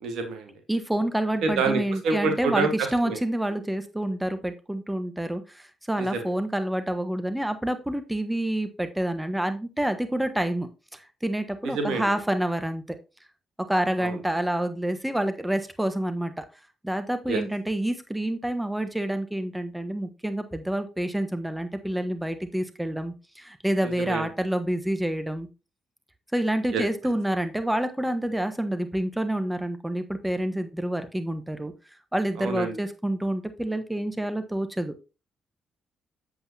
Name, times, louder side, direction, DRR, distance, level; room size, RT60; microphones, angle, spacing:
voice 1, 0.0-0.5 1.4-3.2 6.0-6.3 11.6-12.1 14.0-14.2 17.3-17.4 23.8-24.3 26.7-26.8 32.4-32.8, right 4 dB, 70° right, 6 dB, 1.7 m, -28 dB
voice 2, 0.7-13.0 13.7-16.4 16.8-25.5 26.3-31.7 32.1-34.9, right 1 dB, 10° right, 9 dB, 1.2 m, -28 dB
8.0 x 7.8 x 2.8 m, 0.29 s
hypercardioid pair, 45°, 0 cm